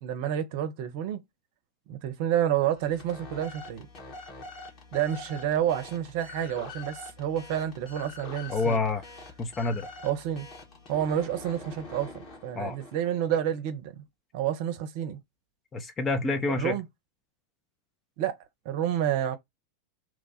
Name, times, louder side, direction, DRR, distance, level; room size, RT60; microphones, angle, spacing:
voice 1, 0.0-1.2 1.9-3.9 4.9-8.8 10.0-10.5 10.9-14.0 14.3-15.2 16.5-16.8 18.2-18.4 18.6-19.4, right 10 dB, 55° right, 0.8 m, -29 dB
sound 1, 2.8-13.3, left 3 dB, 45° left, 1.6 m, -45 dB
voice 2, 8.5-9.0 9.4-9.9 12.5-12.8 15.7-16.7, left 3 dB, 25° left, 0.9 m, -28 dB
3.1 x 2.4 x 4.1 m
hypercardioid pair, 90°, 0 cm